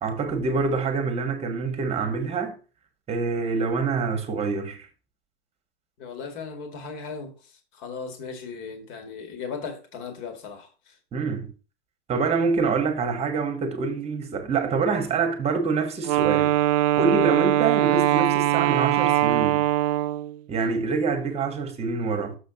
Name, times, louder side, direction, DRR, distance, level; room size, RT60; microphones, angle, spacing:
voice 1, 0.0-2.6 3.1-4.9 11.1-11.5 12.1-16.5 17.0-19.6 20.5-22.4, right 4 dB, 20° right, 1.3 m, -26 dB
voice 2, 6.0-7.3 7.7-10.9, left 5 dB, 40° left, 1.9 m, -37 dB
Wind instrument woodwind instrument, 16.0-20.4, right 14 dB, 40° right, 0.5 m, -21 dB
6.6 x 5.7 x 3.9 m
hypercardioid pair, 120°, 32 cm